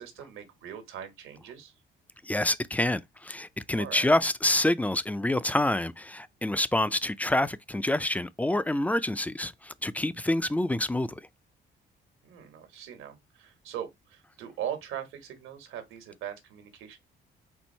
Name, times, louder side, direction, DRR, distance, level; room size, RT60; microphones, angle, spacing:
voice 1, 0.0-1.7 3.8-4.1 12.2-17.0, right 9 dB, 90° right, 1.3 m, -40 dB
voice 2, 2.2-11.2, left 1 dB, 5° left, 0.4 m, -27 dB
4.5 x 2.6 x 4.3 m
cardioid pair, 90°, 20 cm